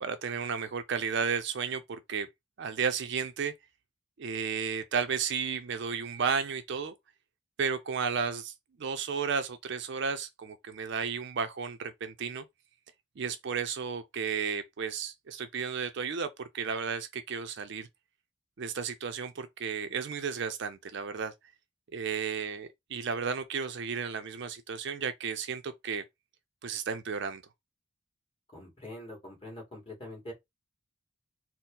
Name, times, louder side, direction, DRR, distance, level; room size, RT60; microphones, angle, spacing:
voice 1, 0.0-2.3 2.6-3.5 4.2-6.9 7.6-8.5 8.8-12.4 13.2-17.9 18.6-21.3 21.9-26.0 26.6-27.4, right 6 dB, 55° right, 0.4 m, -33 dB
voice 2, 28.5-30.3, left 1 dB, 25° left, 2.0 m, -44 dB
4.3 x 2.0 x 3.7 m
head